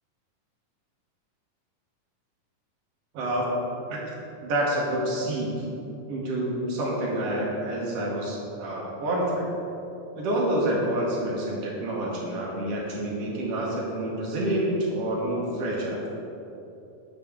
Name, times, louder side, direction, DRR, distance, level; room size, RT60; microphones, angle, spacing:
voice 1, 3.1-3.5 3.9-4.0 4.4-5.5 6.1-9.5 10.1-16.0, right 1 dB, 65° right, -4 dB, 1.6 m, -28 dB
8.6 x 5.0 x 3.6 m, 2.9 s
omnidirectional pair, 4.0 m